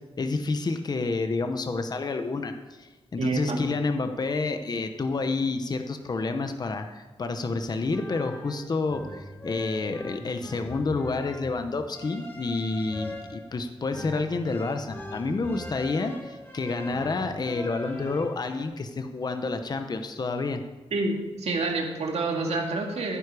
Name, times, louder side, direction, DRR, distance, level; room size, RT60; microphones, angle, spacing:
voice 1, 0.2-20.6, left 3 dB, 40° left, 7 dB, 0.9 m, -29 dB
voice 2, 3.2-3.6 20.9-23.2, right 3 dB, 80° right, 1 dB, 2.3 m, -28 dB
sound 1, 7.8-18.7, left 1 dB, 20° left, 2.8 m, -41 dB
15.0 x 9.8 x 4.9 m, 1.2 s
wide cardioid pair, 150°, 11 cm